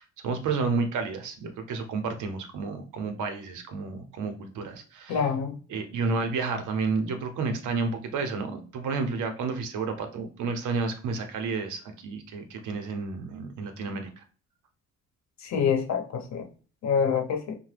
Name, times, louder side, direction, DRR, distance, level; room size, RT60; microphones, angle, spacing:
voice 1, 0.0-5.3 5.7-14.2, right 4 dB, 80° right, 7 dB, 0.8 m, -31 dB
voice 2, 5.1-5.5 15.4-16.5 16.8-17.5, left 6 dB, 65° left, 4 dB, 0.8 m, -26 dB
2.8 x 2.2 x 3.3 m, 0.39 s
cardioid pair, 90°, 30 cm